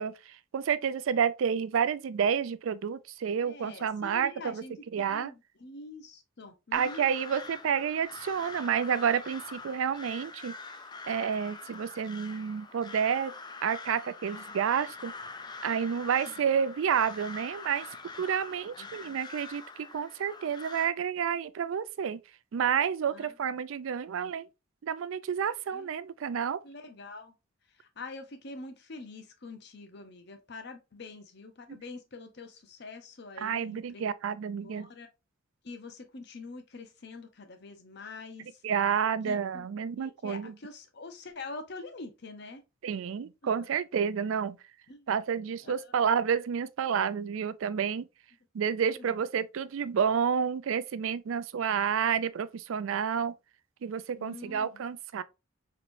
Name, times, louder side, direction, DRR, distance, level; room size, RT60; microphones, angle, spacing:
voice 1, 0.0-4.6 4.9-5.3 6.7-10.5 11.1-13.3 13.6-15.1 15.6-17.9 18.1-22.2 22.5-24.5 24.8-26.6 31.7-31.8 33.4-34.9 38.6-40.5 42.8-44.6 45.1-48.1 48.5-53.3 53.8-55.2, right 7 dB, 75° right, 0.4 m, -30 dB
voice 2, 3.4-7.1 16.3-16.5 18.7-19.2 23.1-23.3 25.7-25.9 26.6-27.3 27.8-34.0 34.6-35.1 35.6-38.6 39.2-39.7 40.0-42.6 43.4-43.5 44.9-45.1 45.6-45.9 48.9-49.2 54.1-54.8, left 3 dB, 55° left, 0.7 m, -45 dB
Crow, 6.7-20.9, left 4 dB, 20° left, 0.4 m, -44 dB
4.4 x 3.1 x 2.6 m
head